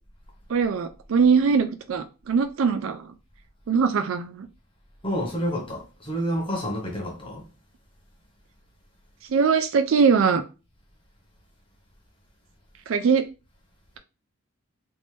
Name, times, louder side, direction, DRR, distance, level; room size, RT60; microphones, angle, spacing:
voice 1, 0.5-3.1 3.7-4.5 9.3-10.4 12.9-13.2, right 5 dB, 65° right, 0.4 m, -21 dB
voice 2, 5.0-7.4, equal, 25° left, 1.0 m, -29 dB
3.5 x 2.5 x 3.1 m
head